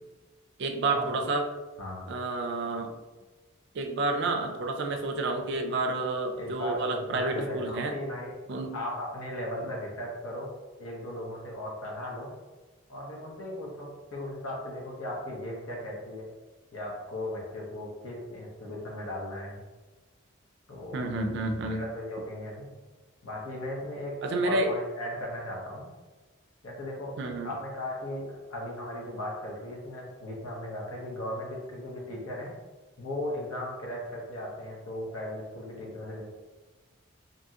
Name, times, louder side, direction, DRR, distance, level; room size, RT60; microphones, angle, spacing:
voice 1, 0.6-1.4 2.1-2.9 3.7-7.9 8.5-8.7 9.6-9.7 20.9-21.8 24.2-24.7 27.2-27.5, right 2 dB, 55° right, 5 dB, 0.3 m, -30 dB
voice 2, 1.8-2.1 6.3-8.3 8.7-10.5 10.8-12.3 12.9-16.3 16.7-19.6 20.7-21.1 21.6-22.7 23.2-25.9 26.6-27.1 27.4-32.5 33.0-36.2, left 1 dB, 80° left, -3 dB, 0.8 m, -37 dB
2.7 x 2.7 x 2.3 m, 1.2 s
head